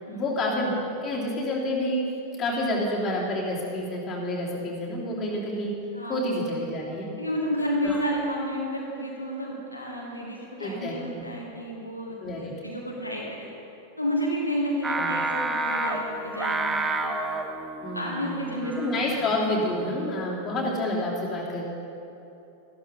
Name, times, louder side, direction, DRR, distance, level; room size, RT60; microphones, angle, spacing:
voice 1, 0.1-0.7 1.0-2.0 2.4-5.7 6.1-7.1 7.8-8.0 10.6-11.2 12.2-12.5 15.0-15.1 17.8-21.6, left 1 dB, 25° left, -5 dB, 3.0 m, -29 dB
voice 2, 5.9-6.7 7.2-13.5 14.0-17.2 17.9-19.0, equal, 85° left, -3 dB, 1.7 m, -31 dB
Singing, 14.8-20.1, right 2 dB, 15° right, 0.8 m, -30 dB
14.0 x 12.5 x 4.0 m, 2.9 s
figure-of-eight pair, 90°, 0 cm